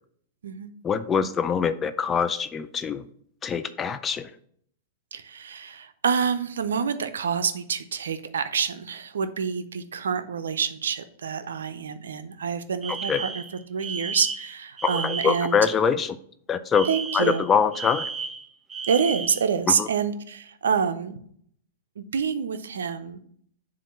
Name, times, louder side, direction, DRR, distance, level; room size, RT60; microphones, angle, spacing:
voice 1, 0.8-3.0 3.4-4.3 13.1-13.2 14.8-16.2 16.5-16.9 17.1-18.0 19.8-19.9, left 6 dB, 20° left, 11 dB, 0.3 m, -24 dB
voice 2, 5.1-13.4 13.7-15.7 16.8-17.5 18.9-21.2 22.0-23.2, right 6 dB, 80° right, 11 dB, 0.5 m, -27 dB
Alarm, 12.8-15.5 16.7-19.5, right 5 dB, 20° right, 0.6 m, -34 dB
7.1 x 2.5 x 5.7 m, 0.64 s
hypercardioid pair, 115°, 0 cm